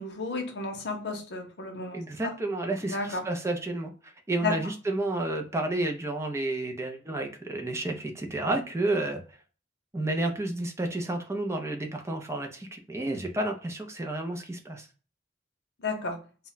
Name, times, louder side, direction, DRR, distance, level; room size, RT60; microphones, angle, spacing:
voice 1, 0.0-2.3 2.8-3.2 4.4-4.7 15.8-16.2, left 3 dB, 65° left, 2 dB, 0.7 m, -33 dB
voice 2, 1.9-3.9 4.3-9.2 9.9-14.9, right 2 dB, 15° right, 3 dB, 0.4 m, -31 dB
2.1 x 2.1 x 3.8 m, 0.37 s
head